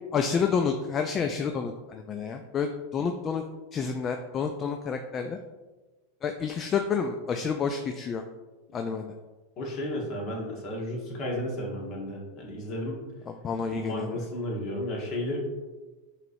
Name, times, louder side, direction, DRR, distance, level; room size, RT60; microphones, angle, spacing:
voice 1, 0.1-3.4 3.7-5.4 6.2-8.2 8.7-9.1 13.3-14.2, left 6 dB, 30° left, 5 dB, 0.3 m, -29 dB
voice 2, 9.6-13.0 13.7-15.4, left 1 dB, 45° left, -2 dB, 1.4 m, -33 dB
5.6 x 3.1 x 2.7 m, 1.2 s
hypercardioid pair, 120°, 0 cm